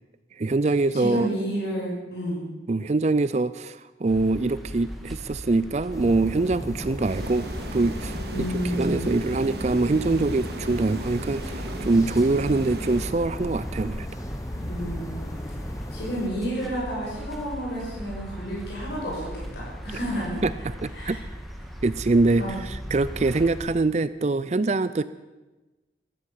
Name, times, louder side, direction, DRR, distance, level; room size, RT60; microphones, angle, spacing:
voice 1, 0.4-1.3 2.7-8.2 8.7-14.1 20.4-20.5 20.8-21.2 21.8-25.0, right 3 dB, 40° right, 15 dB, 0.4 m, -24 dB
voice 2, 0.9-2.4 8.3-9.1 14.7-15.4 15.9-19.3 19.5-20.4 20.9-21.2 22.4-22.5, equal, 70° left, -5 dB, 6.4 m, -30 dB
sound 1, 4.1-23.7, equal, ahead, 1.6 m, -38 dB
sound 2, 5.9-16.3, left 1 dB, 20° left, 1.0 m, -36 dB
sound 3, 7.0-13.6, right 1 dB, 65° right, 1.5 m, -38 dB
14.5 x 13.0 x 7.4 m, 1.1 s
head